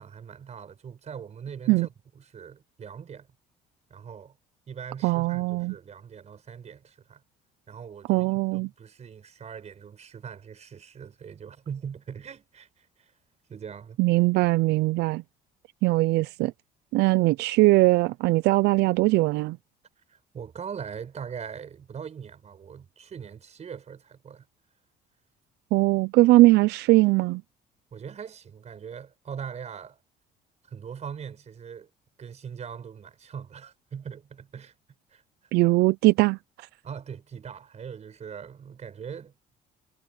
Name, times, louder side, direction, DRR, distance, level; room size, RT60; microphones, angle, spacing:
voice 1, 0.0-3.3 3.9-4.3 4.7-7.2 7.7-13.1 13.5-14.0 20.1-24.4 27.9-30.0 30.7-31.9 32.2-34.7 35.1-35.2 36.8-39.3, right 7 dB, 40° right, 5.1 m, -41 dB
voice 2, 5.0-5.7 8.1-8.7 14.0-15.2 15.8-16.5 16.9-19.6 25.7-27.4 35.5-36.4, right 20 dB, 80° right, 0.5 m, -20 dB
cardioid pair, 110°, 17 cm